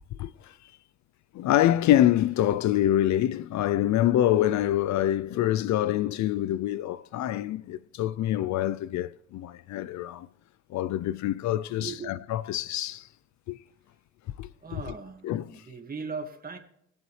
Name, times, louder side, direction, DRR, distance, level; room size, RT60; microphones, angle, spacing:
voice 1, 0.2-0.6 1.3-10.3 10.7-13.1 13.5-13.6 14.4-14.8 15.2-15.6, left 12 dB, 70° left, 0.5 m, -26 dB
voice 2, 11.8-12.1 14.6-16.6, right 5 dB, 30° right, 1.8 m, -38 dB
20.0 x 7.8 x 3.2 m
cardioid pair, 90°, 30 cm